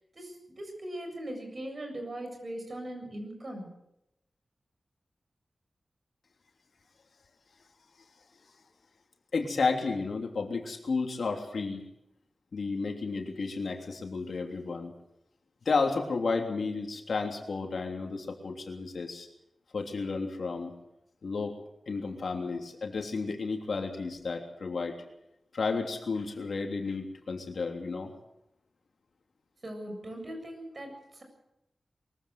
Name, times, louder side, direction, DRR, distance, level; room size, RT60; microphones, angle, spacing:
voice 1, 0.1-3.7 29.6-31.2, right 1 dB, 45° right, 4 dB, 7.6 m, -40 dB
voice 2, 9.3-11.8 12.5-14.9 15.6-19.3 19.7-20.7 21.2-21.6 21.9-25.0 25.5-28.1, left 4 dB, 75° left, 3 dB, 3.2 m, -32 dB
23.0 x 15.5 x 7.9 m, 0.85 s
wide cardioid pair, 85°, 0 cm